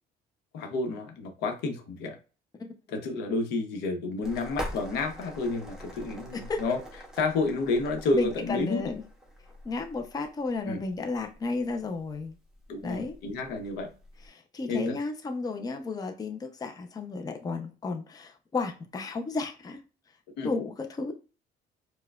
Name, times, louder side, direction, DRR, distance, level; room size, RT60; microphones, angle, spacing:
voice 1, 0.5-2.2 2.9-6.8 7.1-8.9 10.6-10.8 12.7-13.9 14.7-15.0 20.4-20.5, left 3 dB, 90° left, 0.9 m, -30 dB
sound 1, 4.2-14.3, equal, 5° right, 0.9 m, -44 dB
voice 2, 8.1-9.0 9.6-12.3 12.8-13.2 14.3-19.8 20.4-21.1, left 3 dB, 20° left, 0.5 m, -33 dB
4.6 x 2.2 x 2.3 m
cardioid pair, 110°, 17 cm